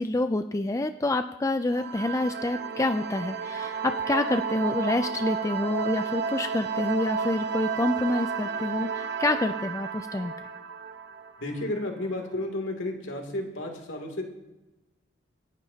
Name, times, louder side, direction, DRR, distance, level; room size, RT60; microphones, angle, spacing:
voice 1, 0.0-10.3, left 2 dB, 15° left, 8 dB, 0.4 m, -27 dB
sound 1, 1.7-12.1, right 6 dB, 55° right, 0.9 m, -32 dB
voice 2, 11.4-14.2, left 1 dB, 65° left, 2 dB, 2.7 m, -32 dB
26.5 x 11.0 x 2.8 m, 1.0 s
head